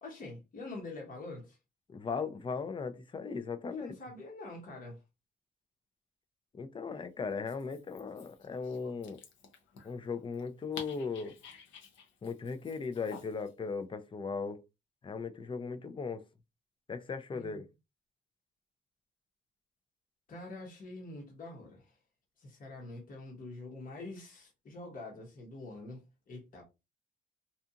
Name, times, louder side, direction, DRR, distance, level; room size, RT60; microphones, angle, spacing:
voice 1, 0.0-1.6 3.8-5.0 17.3-17.6 20.3-21.9 22.4-26.6, left 2 dB, 45° left, 1.0 m, -45 dB
voice 2, 1.9-3.9 6.5-9.2 9.8-11.3 12.2-14.6 15.0-16.3 16.9-17.7, left 5 dB, 25° left, 0.4 m, -37 dB
Dog, 7.3-13.5, left 6 dB, 70° left, 0.7 m, -52 dB
2.8 x 2.4 x 2.4 m
cardioid pair, 90°, 20 cm